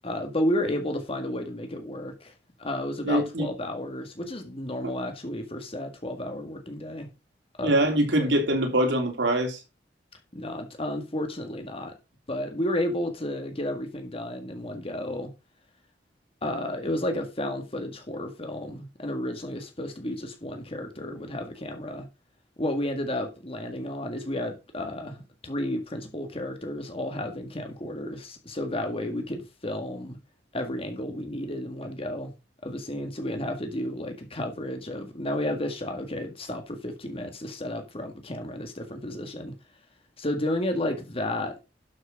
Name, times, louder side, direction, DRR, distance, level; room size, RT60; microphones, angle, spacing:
voice 1, 0.0-2.3 2.6-7.1 7.6-7.9 8.2-8.4 10.3-11.9 12.3-15.3 16.4-22.1 22.6-30.2 30.5-32.3 32.6-39.5 40.2-41.6, left 1 dB, 35° left, 1.8 m, -32 dB
voice 2, 3.0-3.5 4.8-4.9 7.6-9.6, right 1 dB, 85° right, 3.2 m, -23 dB
12.0 x 6.3 x 5.2 m
head